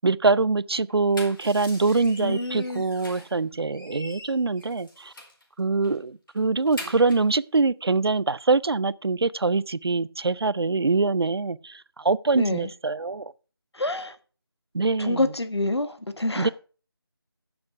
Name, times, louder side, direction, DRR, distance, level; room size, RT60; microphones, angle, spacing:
voice 1, 0.0-5.1 5.6-13.3 14.7-15.2 16.4-16.5, right 3 dB, 70° right, 0.5 m, -24 dB
sound 1, 0.9-3.4 3.7-5.4 5.8-6.0 6.3-7.3, left 1 dB, 55° left, 4.7 m, -43 dB
voice 2, 2.2-2.9 12.3-12.7 13.7-14.2 15.0-16.5, left 2 dB, 80° left, 1.5 m, -27 dB
9.6 x 7.3 x 5.8 m
figure-of-eight pair, 165°, 14 cm